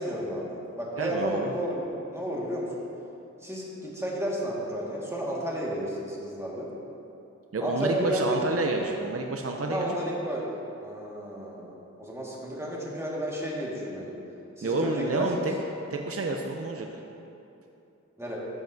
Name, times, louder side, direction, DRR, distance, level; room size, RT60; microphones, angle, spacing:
voice 1, 0.0-2.7 3.4-6.7 7.6-8.4 9.7-10.5 10.8-14.1 14.6-15.3 18.2-18.4, equal, 10° right, -5 dB, 1.8 m, -32 dB
voice 2, 1.0-1.5 7.5-10.0 14.6-15.5 15.9-17.0, right 2 dB, 50° right, 2 dB, 0.6 m, -29 dB
13.0 x 7.0 x 2.7 m, 2.8 s
wide cardioid pair, 50°, 30 cm